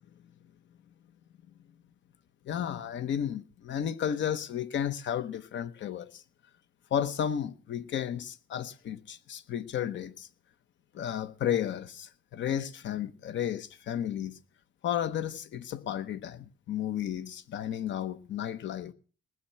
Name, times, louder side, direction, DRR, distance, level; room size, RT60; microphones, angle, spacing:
voice 1, 2.4-6.2 6.9-10.3 10.9-14.4 14.8-18.9, left 9 dB, 65° left, 1.0 m, -33 dB
19.5 x 7.6 x 5.7 m
cardioid pair, 90°, 20 cm